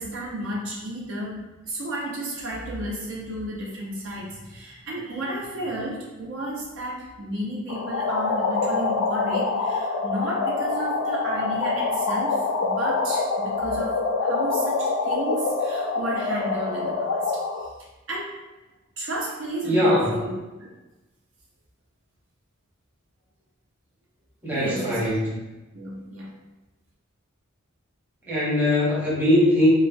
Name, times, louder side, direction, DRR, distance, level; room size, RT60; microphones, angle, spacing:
voice 1, 0.0-1.4 1.6-12.4 12.6-17.3 18.1-18.4 19.0-20.3 20.6-20.7 24.5-25.4 25.7-26.3, right 1 dB, 65° right, -4 dB, 0.6 m, -33 dB
sound 1, 7.7-17.7, left 3 dB, 85° left, 0.3 m, -25 dB
voice 2, 19.6-20.1 24.4-25.3 28.2-29.7, left 1 dB, 10° right, -8 dB, 0.9 m, -21 dB
3.1 x 2.0 x 2.6 m, 1.1 s
head